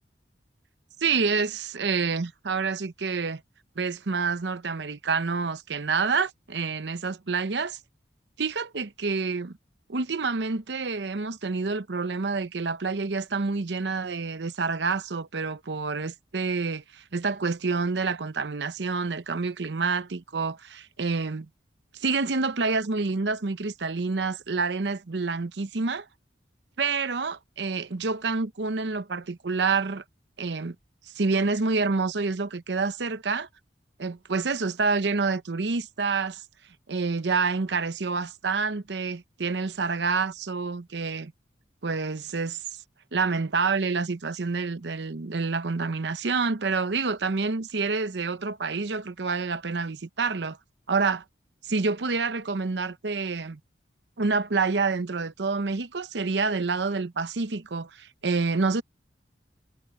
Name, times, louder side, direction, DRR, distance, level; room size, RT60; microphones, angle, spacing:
voice 1, 1.0-3.4 3.8-7.8 8.4-9.6 9.9-21.5 22.0-26.1 26.8-30.0 30.4-30.8 31.1-33.5 34.0-36.4 36.9-41.3 41.8-42.6 43.1-50.6 50.9-51.2 51.7-53.6 54.2-58.8, right 4 dB, 75° right, 0.8 m, -28 dB
head